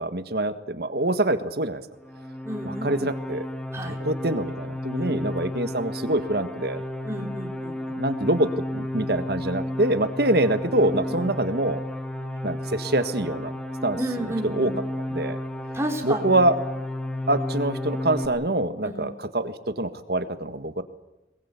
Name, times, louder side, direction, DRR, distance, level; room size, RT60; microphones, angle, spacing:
voice 1, 0.0-1.8 2.7-3.5 3.8-6.8 7.9-11.8 12.4-13.5 13.8-14.0 14.4-14.7 15.1-15.4 16.0-16.5 17.3-20.8, right 1 dB, 60° right, 11 dB, 1.6 m, -25 dB
sound 1, 2.0-18.3, left 1 dB, 5° left, 1.7 m, -32 dB
voice 2, 2.4-3.1 3.7-4.0 5.0-5.1 7.0-7.8 11.1-11.2 14.0-14.8 15.7-16.4 18.8-19.0, right 1 dB, 15° right, 1 dB, 3.6 m, -32 dB
22.5 x 21.0 x 8.3 m, 0.97 s
head